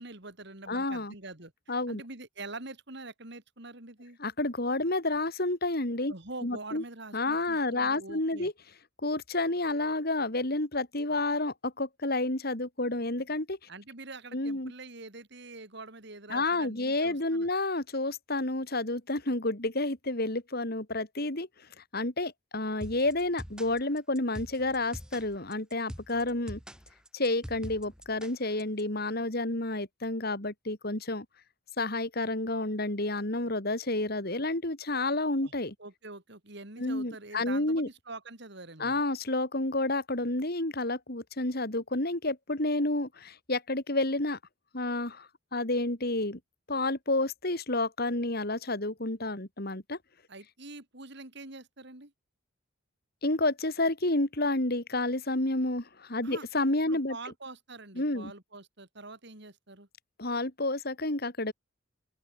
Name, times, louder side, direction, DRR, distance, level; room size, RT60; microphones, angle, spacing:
voice 1, 0.0-4.2 6.1-8.5 13.7-17.5 35.4-35.5 35.8-39.0 50.3-52.1 56.2-56.5 56.9-59.9, right 2 dB, 55° right, 3.7 m, -45 dB
voice 2, 0.7-1.1 1.7-2.0 4.2-6.1 6.4-6.8 7.1-8.5 9.0-13.6 14.3-14.7 16.3-21.5 21.8-26.6 27.1-31.3 31.8-35.7 36.8-37.9 38.8-44.4 44.7-46.4 46.7-50.0 53.2-57.2 57.9-58.3 60.2-61.5, left 2 dB, 50° left, 2.9 m, -30 dB
sound 1, 22.8-28.8, equal, 5° right, 7.5 m, -44 dB
open air
head